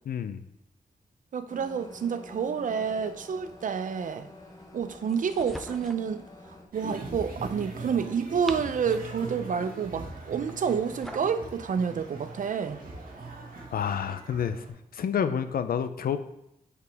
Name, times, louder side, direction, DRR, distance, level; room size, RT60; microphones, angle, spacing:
voice 1, 0.1-0.4 13.7-16.2, left 8 dB, 85° left, 11 dB, 0.5 m, -29 dB
voice 2, 1.3-4.3 4.7-6.2 6.5-12.8, right 6 dB, 60° right, 11 dB, 0.5 m, -29 dB
sound 1, 1.5-6.6, left 1 dB, 25° left, 0.9 m, -49 dB
sound 2, 5.1-6.1 8.1-9.2 10.5-11.4, equal, ahead, 0.4 m, -44 dB
sound 3, 6.7-14.7, right 3 dB, 85° right, 1.5 m, -41 dB
8.1 x 4.9 x 3.4 m, 0.82 s
wide cardioid pair, 140°, 15 cm